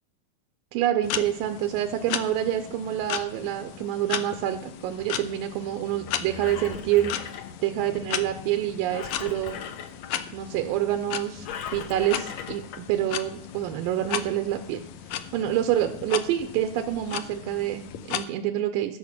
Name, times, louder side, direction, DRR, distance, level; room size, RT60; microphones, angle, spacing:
voice 1, 0.7-7.1 7.6-9.6 10.3-11.5 11.7-14.8 15.1-19.0, right 12 dB, 85° right, 6 dB, 2.3 m, -27 dB
sound 1, 1.0-18.2, left 10 dB, 90° left, 1.5 m, -36 dB
Engine, 6.1-8.0 8.9-10.1 11.4-12.8 13.5-13.6, left 7 dB, 70° left, 1.9 m, -39 dB
14.0 x 6.8 x 5.9 m, 0.74 s
omnidirectional pair, 4.1 m